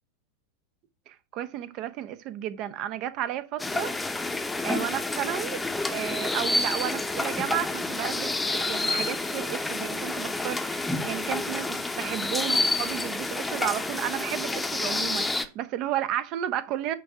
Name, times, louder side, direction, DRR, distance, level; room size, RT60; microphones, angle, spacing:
voice 1, 1.1-3.9 4.6-16.9, right 12 dB, 40° right, 0.8 m, -33 dB
sound 1, 3.6-15.5, left 2 dB, 5° left, 0.8 m, -29 dB
9.4 x 3.6 x 5.6 m
figure-of-eight pair, 85°, 0 cm